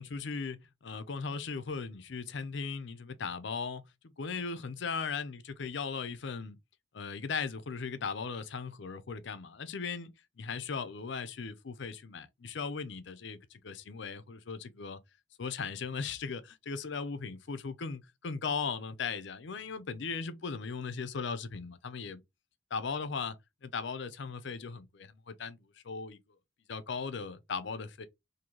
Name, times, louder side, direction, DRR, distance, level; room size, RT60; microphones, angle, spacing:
voice 1, 0.0-3.8 4.2-6.6 6.9-15.0 15.4-22.2 22.7-26.2 26.7-28.1, left 5 dB, 65° left, 0.6 m, -38 dB
3.0 x 2.7 x 3.8 m
head